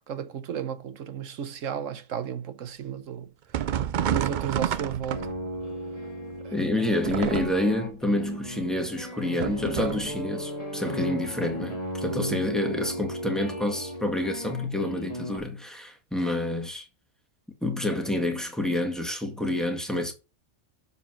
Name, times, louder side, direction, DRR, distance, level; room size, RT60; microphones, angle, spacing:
voice 1, 0.1-3.3 4.0-5.3 6.4-6.5, right 8 dB, 85° right, 1.3 m, -33 dB
sound 1, 3.5-5.7 7.0-7.8 9.4-10.2, right 9 dB, 60° right, 0.5 m, -29 dB
sound 2, 4.9-15.4, equal, 30° left, 1.6 m, -36 dB
voice 2, 6.5-16.9 17.6-20.1, left 1 dB, ahead, 1.7 m, -28 dB
7.1 x 5.4 x 5.8 m
omnidirectional pair, 1.3 m